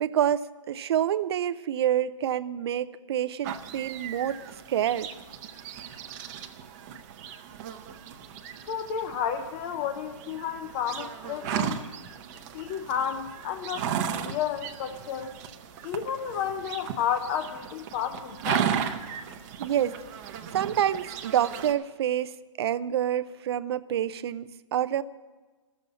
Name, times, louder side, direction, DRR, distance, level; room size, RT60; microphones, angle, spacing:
voice 1, 0.0-4.4 4.7-5.1 19.6-20.0 20.3-25.0, right 10 dB, 55° right, 15 dB, 0.5 m, -27 dB
sound 1, 3.4-21.7, right 8 dB, 35° right, 0.8 m, -36 dB
voice 2, 8.6-11.8 12.5-15.3 15.8-18.7, left 8 dB, 30° left, 7 dB, 0.6 m, -32 dB
14.0 x 7.1 x 9.6 m, 1.3 s
hypercardioid pair, 140°, 16 cm